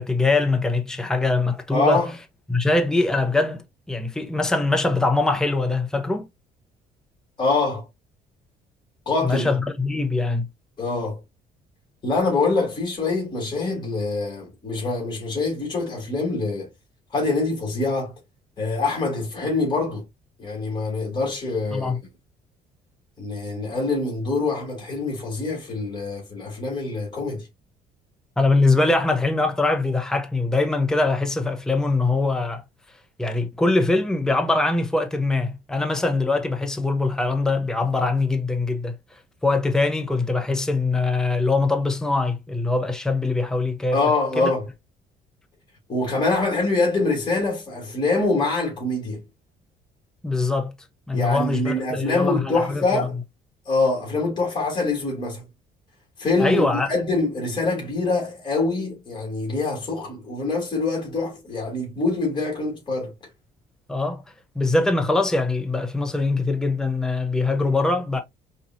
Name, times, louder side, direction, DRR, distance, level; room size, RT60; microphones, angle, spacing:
voice 1, 0.0-2.0 2.5-6.3 9.2-10.5 21.7-22.0 28.4-32.6 33.2-39.0 39.4-44.0 44.4-44.5 50.2-50.7 51.1-53.0 56.4-56.9 63.9-64.2 64.6-68.2, left 3 dB, 5° left, 0.7 m, -22 dB
voice 2, 1.7-2.1 7.4-7.9 9.0-9.5 10.8-11.2 12.0-16.7 17.1-18.1 18.6-20.0 20.4-22.0 23.2-27.5 43.9-44.7 45.9-49.2 51.1-53.1 53.6-55.4 56.2-63.1, left 3 dB, 25° left, 3.1 m, -24 dB
5.2 x 3.0 x 2.6 m
cardioid pair, 110°, 17 cm